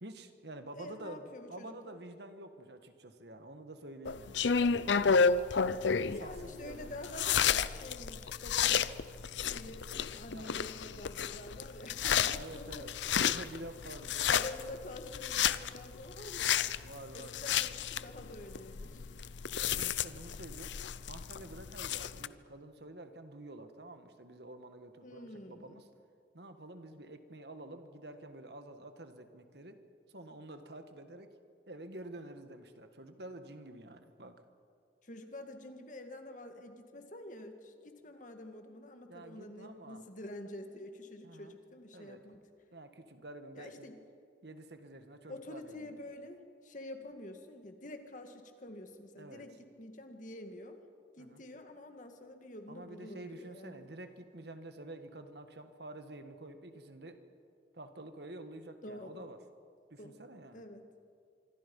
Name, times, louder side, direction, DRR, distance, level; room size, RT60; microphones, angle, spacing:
voice 1, 0.0-5.1 6.0-6.9 10.3-10.6 12.0-14.5 16.8-17.3 18.8-19.1 19.6-20.7 21.1-25.9 26.3-29.8 30.1-31.3 31.7-34.4 39.1-40.1 41.2-41.5 41.9-42.2 42.7-43.9 44.4-45.9 49.2-49.4 51.2-51.4 52.7-57.2 57.7-59.4 59.9-60.6, right 1 dB, 65° right, 8 dB, 1.6 m, -49 dB
voice 2, 0.7-2.0 6.1-8.9 9.4-12.8 13.2-13.3 14.3-16.6 17.1-19.1 25.0-25.8 35.0-42.4 43.6-43.9 45.3-50.8 51.2-53.9 58.8-59.2 60.0-60.2 60.5-60.8, left 1 dB, 45° left, 5 dB, 2.0 m, -47 dB
sound 1, 4.1-22.3, left 6 dB, 80° left, 0.6 m, -32 dB
26.0 x 24.5 x 5.5 m, 2.2 s
head